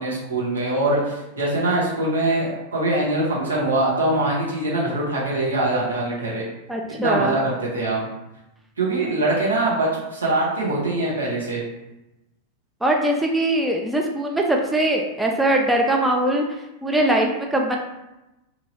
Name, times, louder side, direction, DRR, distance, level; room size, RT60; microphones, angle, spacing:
voice 1, 0.0-6.4 7.0-8.1 8.8-11.6, right 2 dB, 70° right, -5 dB, 1.0 m, -23 dB
voice 2, 6.7-7.4 12.8-16.4 16.8-17.8, right 1 dB, 5° right, 1 dB, 0.3 m, -21 dB
2.9 x 2.7 x 2.7 m, 0.95 s
figure-of-eight pair, 90°, 0 cm